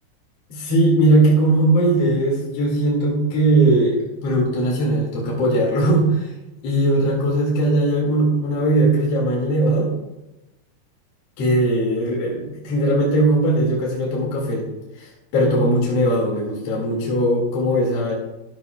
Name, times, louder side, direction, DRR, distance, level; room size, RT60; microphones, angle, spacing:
voice 1, 0.5-6.3 6.6-9.9 11.4-14.7 15.0-18.1, right 1 dB, 45° left, -3 dB, 2.2 m, -19 dB
13.0 x 12.0 x 2.3 m, 0.98 s
omnidirectional pair, 5.5 m